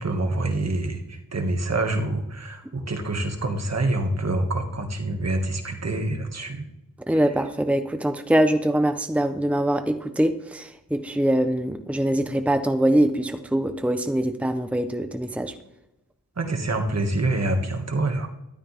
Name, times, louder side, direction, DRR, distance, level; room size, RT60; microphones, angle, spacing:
voice 1, 0.0-6.7 7.1-7.2 16.4-18.3, right 2 dB, 50° right, 4 dB, 2.0 m, -26 dB
voice 2, 7.1-15.5, right 1 dB, 5° right, 8 dB, 0.9 m, -23 dB
12.5 x 12.5 x 3.6 m, 0.91 s
wide cardioid pair, 80°, 34 cm